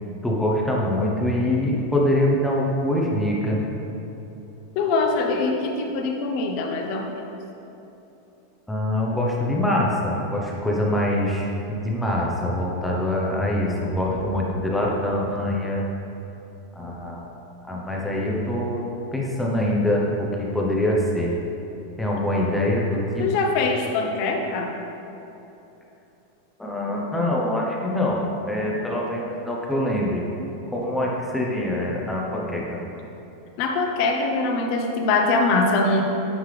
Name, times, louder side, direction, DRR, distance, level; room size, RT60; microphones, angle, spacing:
voice 1, 0.2-3.6 8.7-15.9 16.7-17.3 17.6-18.8 19.1-21.3 22.0-23.2 26.6-30.2 30.7-32.8, left 1 dB, 5° left, -3 dB, 0.7 m, -24 dB
voice 2, 4.8-7.1 23.2-24.7 33.6-36.0, left 3 dB, 50° left, 2 dB, 0.6 m, -23 dB
9.3 x 3.4 x 3.3 m, 3.0 s
supercardioid pair, 150°, 0 cm